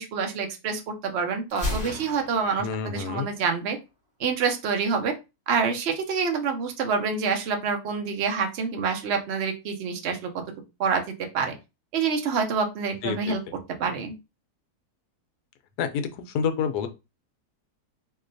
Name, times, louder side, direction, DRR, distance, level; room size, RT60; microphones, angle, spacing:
voice 1, 0.0-3.8 4.2-5.1 5.5-10.3 10.8-11.0 11.3-11.5 11.9-13.4 13.8-14.1, right 5 dB, 55° right, 4 dB, 0.8 m, -27 dB
Gunshot gunfire, 1.5-3.5, left 1 dB, 5° right, 2.0 m, -34 dB
voice 2, 2.6-3.3 13.0-13.4 15.8-16.1 16.3-16.9, left 6 dB, 80° left, 8 dB, 1.1 m, -28 dB
3.8 x 2.8 x 2.6 m, 0.26 s
omnidirectional pair, 1.7 m